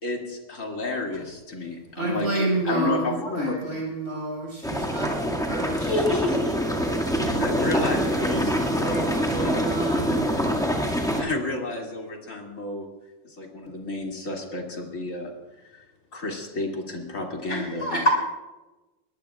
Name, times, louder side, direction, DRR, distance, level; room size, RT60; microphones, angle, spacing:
voice 1, 0.0-3.8 7.4-9.6 10.0-10.2 10.9-12.9 13.2-15.3 15.6-15.8 16.1-18.1, left 2 dB, 85° left, 3.1 m, -31 dB
voice 2, 1.9-6.0 7.1-10.6 10.9-11.0, right 2 dB, 50° right, 6.1 m, -30 dB
sound 1, 4.6-11.2, equal, 5° left, 2.0 m, -25 dB
voice 3, 5.8-6.5 17.4-18.1, left 1 dB, 65° left, 6.6 m, -25 dB
23.0 x 18.0 x 2.4 m
omnidirectional pair, 1.3 m